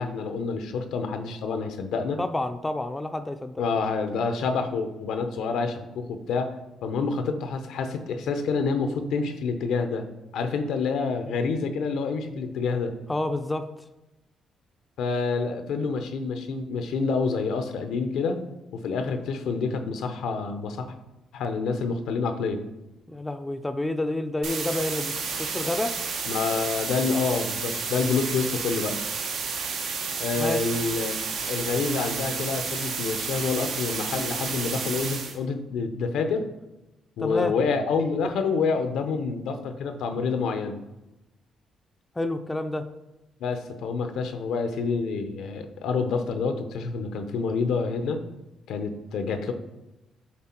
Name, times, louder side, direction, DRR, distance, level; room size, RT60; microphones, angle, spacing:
voice 1, 0.0-2.2 3.6-6.5 6.8-10.0 10.3-12.9 15.0-18.4 18.7-20.9 21.3-22.6 26.3-29.0 30.2-31.2 31.5-36.4 37.2-40.8 43.4-48.2 48.7-49.5, left 4 dB, 80° left, 8 dB, 0.7 m, -27 dB
voice 2, 2.2-3.6 13.1-13.7 23.1-25.1 25.4-25.9 30.4-30.7 37.2-37.5 42.2-42.8, left 2 dB, 15° left, 9 dB, 0.4 m, -29 dB
sound 1, 24.4-35.4, right 5 dB, 75° right, 1.1 m, -31 dB
7.5 x 3.7 x 4.4 m, 0.98 s
cardioid pair, 90°, 0 cm